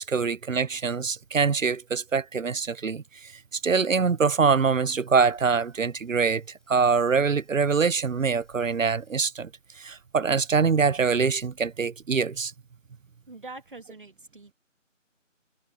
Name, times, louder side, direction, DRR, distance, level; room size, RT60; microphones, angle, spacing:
voice 1, 0.0-9.5 9.8-12.5, right 5 dB, 85° right, 0.8 m, -24 dB
sound 1, 3.9-9.2, left 7 dB, ahead, 5.3 m, -73 dB
voice 2, 13.3-14.5, right 3 dB, 40° right, 2.3 m, -44 dB
figure-of-eight pair, 170°, 38 cm